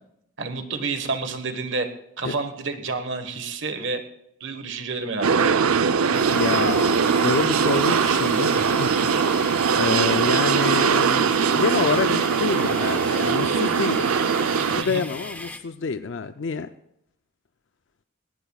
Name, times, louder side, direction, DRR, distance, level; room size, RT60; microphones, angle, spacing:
voice 1, 0.4-1.9 2.2-4.0 4.4-5.6 14.7-15.0, right 3 dB, 55° right, 7 dB, 1.4 m, -29 dB
sound 1, 5.2-14.8, right 6 dB, 85° right, 0.6 m, -21 dB
sound 2, 6.1-15.6, left 2 dB, 5° left, 0.6 m, -38 dB
voice 2, 6.3-6.9 7.2-11.3 11.6-14.1 14.5-16.7, left 4 dB, 55° left, 9 dB, 0.5 m, -27 dB
19.0 x 18.5 x 2.4 m, 0.79 s
head